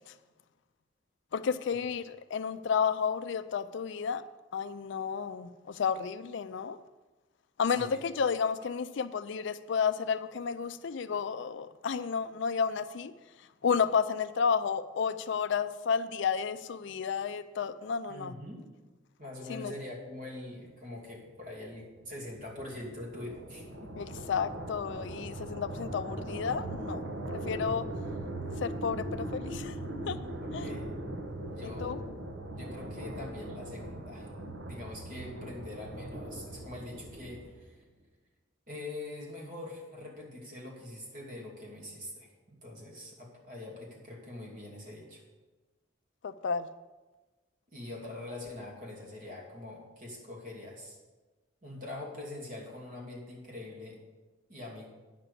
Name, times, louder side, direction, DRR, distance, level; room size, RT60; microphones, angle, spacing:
voice 1, 1.3-4.2 4.5-6.8 7.6-13.1 13.6-18.3 19.5-19.7 24.0-27.0 27.3-27.9 28.6-29.8 30.1-30.2 30.5-30.7 31.8-32.0 46.2-46.7, left 6 dB, 65° left, 13 dB, 0.4 m, -31 dB
voice 2, 7.7-8.0 18.1-18.7 19.2-23.9 30.4-30.9 31.5-32.1 32.5-37.8 38.7-45.2 47.7-51.0 51.6-54.0 54.5-54.9, left 2 dB, 45° right, -2 dB, 2.6 m, -44 dB
sound 1, 21.5-37.8, right 1 dB, 70° right, 1.2 m, -40 dB
9.5 x 5.9 x 6.9 m, 1.2 s
head